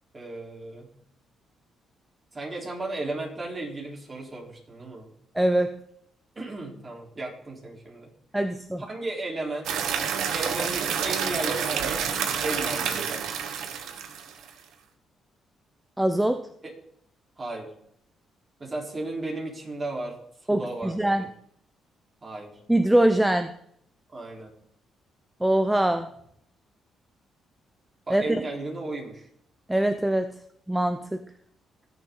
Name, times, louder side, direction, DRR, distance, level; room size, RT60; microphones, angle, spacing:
voice 1, 0.1-0.9 2.3-5.1 6.4-8.1 8.8-9.9 10.3-13.3 16.6-16.7 17.4-17.7 18.6-20.2 20.4-21.3 22.2-22.6 24.1-24.5 28.1-29.3, right 2 dB, 30° right, -1 dB, 4.1 m, -35 dB
voice 2, 5.3-5.8 8.3-8.8 16.0-16.4 20.5-21.2 22.7-23.5 25.4-26.1 28.1-28.4 29.7-30.4 30.7-31.2, right 1 dB, 10° right, 9 dB, 0.7 m, -23 dB
sound 1, 9.6-14.5, right 7 dB, 80° right, 1.3 m, -28 dB
19.0 x 7.0 x 3.9 m, 0.70 s
cardioid pair, 90°, 0 cm